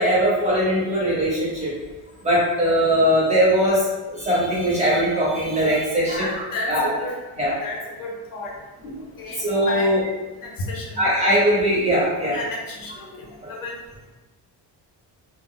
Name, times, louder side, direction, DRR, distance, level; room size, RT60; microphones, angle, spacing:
voice 1, 0.0-1.7 2.2-6.4 6.7-6.9 7.4-7.6 8.8-8.9 9.3-10.0 11.0-12.4, equal, 15° right, -7 dB, 0.8 m, -20 dB
voice 2, 6.1-7.2 7.6-8.5 9.2-9.4 9.6-9.9 10.4-11.0 12.3-13.7, left 2 dB, 55° left, -1 dB, 0.6 m, -32 dB
2.4 x 2.1 x 3.5 m, 1.2 s
cardioid pair, 160°, 41 cm